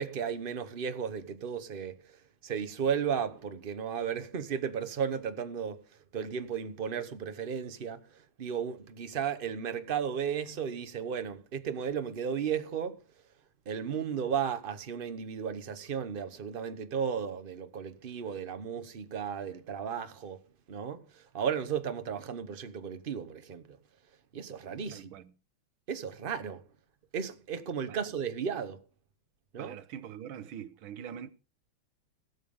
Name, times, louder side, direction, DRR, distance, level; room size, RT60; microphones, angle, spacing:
voice 1, 0.0-1.9 2.4-5.8 6.1-13.0 13.7-20.4 20.7-23.8 24.3-25.1 25.9-26.6 27.1-28.8 29.5-29.8, right 7 dB, 40° right, 0.8 m, -34 dB
voice 2, 24.9-25.3 27.9-28.0 29.6-31.3, right 9 dB, 80° right, 1.7 m, -43 dB
17.0 x 7.2 x 5.3 m
omnidirectional pair, 2.2 m